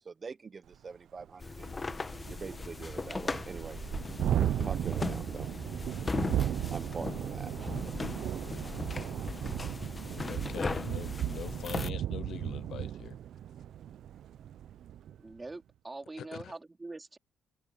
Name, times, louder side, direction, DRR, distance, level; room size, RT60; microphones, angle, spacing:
voice 1, 0.0-1.8 2.3-3.8 4.6-5.5 6.7-7.5, right 5 dB, 35° right, 0.8 m, -43 dB
Thunderstorm, 0.7-0.8 1.2-1.3 1.6-15.2, right 11 dB, 70° right, 0.7 m, -35 dB
sound 1, 1.4-11.9, left 3 dB, 25° left, 1.3 m, -38 dB
sound 2, 2.8-7.3, right 12 dB, 90° right, 3.0 m, -58 dB
voice 2, 10.2-13.2 16.2-16.5, left 10 dB, 70° left, 0.7 m, -43 dB
voice 3, 15.2-17.2, right 2 dB, 20° right, 3.4 m, -44 dB
cardioid pair, 90°, 0 cm